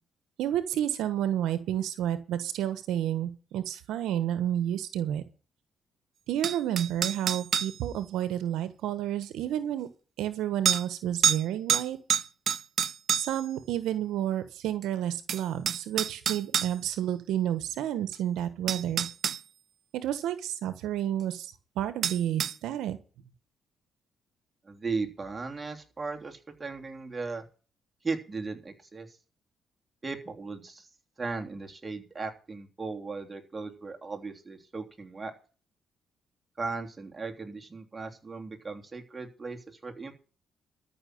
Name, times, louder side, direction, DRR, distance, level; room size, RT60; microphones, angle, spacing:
voice 1, 0.4-5.2 6.3-9.9 10.2-12.0 13.1-19.1 19.9-23.0, right 11 dB, 85° right, 13 dB, 1.3 m, -30 dB
sound 1, 6.4-7.8 9.2-9.3 10.6-10.8 11.2-11.4 11.7-13.4 14.8-14.9 15.3-16.7 18.1-18.2 18.7-19.4 22.0-22.5, right 8 dB, 60° right, 0.7 m, -27 dB
voice 2, 24.6-27.4 28.0-29.2 30.0-30.9 31.2-35.3 36.6-40.1, right 4 dB, 25° right, 2 dB, 3.2 m, -37 dB
13.5 x 6.1 x 9.2 m, 0.37 s
cardioid pair, 90°, 0 cm